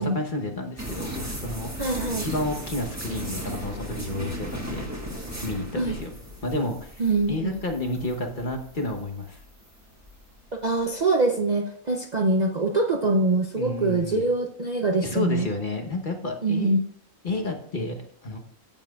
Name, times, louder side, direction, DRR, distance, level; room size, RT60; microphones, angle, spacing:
voice 1, 0.0-1.7 2.2-4.9 5.4-6.1 6.4-7.0 7.3-9.4 13.6-14.3 15.0-16.7 17.2-18.4, left 2 dB, 40° left, 2 dB, 1.1 m, -30 dB
sound 1, 0.8-10.9, equal, 10° right, 1.5 m, -36 dB
voice 2, 1.8-2.3 5.7-6.0 7.0-7.6 10.5-15.5 16.4-16.8, right 2 dB, 40° right, 2 dB, 0.6 m, -24 dB
14.5 x 7.3 x 2.4 m, 0.64 s
omnidirectional pair, 1.5 m